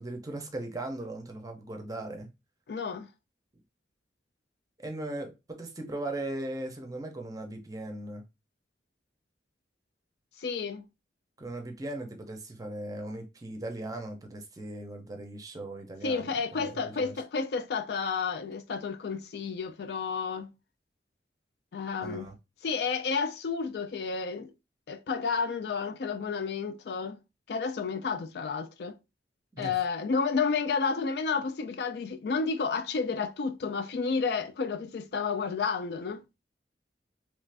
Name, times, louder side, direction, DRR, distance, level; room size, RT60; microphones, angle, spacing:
voice 1, 0.0-2.3 4.8-8.2 11.4-17.1 22.0-22.3 29.5-29.8, right 1 dB, 20° right, 0.6 m, -38 dB
voice 2, 2.7-3.1 10.4-10.8 16.0-20.5 21.7-22.3 22.6-24.5 24.9-27.2 27.5-29.0 29.6-36.2, left 5 dB, 60° left, 0.4 m, -31 dB
3.2 x 2.5 x 3.2 m
head